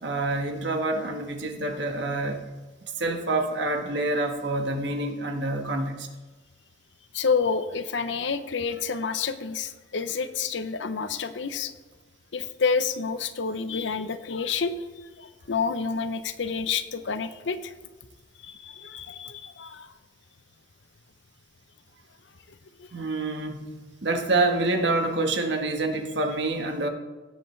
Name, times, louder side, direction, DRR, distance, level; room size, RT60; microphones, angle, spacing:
voice 1, 0.0-2.5 2.8-6.1 22.9-26.9, right 2 dB, 70° right, 4 dB, 1.4 m, -27 dB
voice 2, 7.1-11.7 12.3-17.7 18.4-19.9 22.8-22.9, left 5 dB, 75° left, 11 dB, 0.7 m, -29 dB
17.5 x 7.9 x 3.3 m, 1.2 s
head